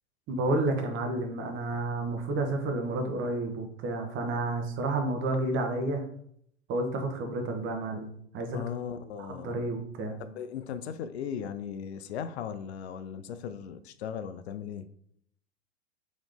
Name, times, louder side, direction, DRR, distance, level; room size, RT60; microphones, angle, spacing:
voice 1, 0.3-6.0 6.7-8.1 8.3-8.6 9.2-10.2, right 2 dB, 35° right, 0.9 m, -30 dB
voice 2, 8.5-9.6 10.2-14.9, left 8 dB, 70° left, 0.5 m, -37 dB
3.8 x 3.1 x 3.4 m
hypercardioid pair, 95°, 34 cm